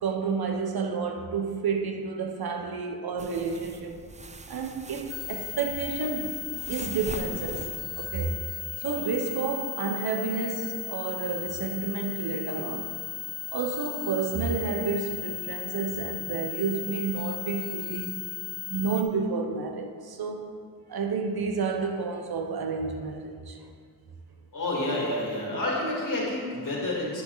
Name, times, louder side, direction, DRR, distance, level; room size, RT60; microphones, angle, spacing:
voice 1, 0.0-4.0 4.5-8.4 8.8-12.9 13.5-18.2 18.7-20.6 20.9-23.7, right 5 dB, 75° right, 0.9 m, -30 dB
sound 1, 3.2-8.4, right 3 dB, 20° right, 0.4 m, -43 dB
sound 2, 5.1-19.0, left 9 dB, 40° left, 0.8 m, -36 dB
voice 2, 24.5-27.2, left 1 dB, 55° left, 2.3 m, -29 dB
9.6 x 7.1 x 4.0 m
wide cardioid pair, 90°, 37 cm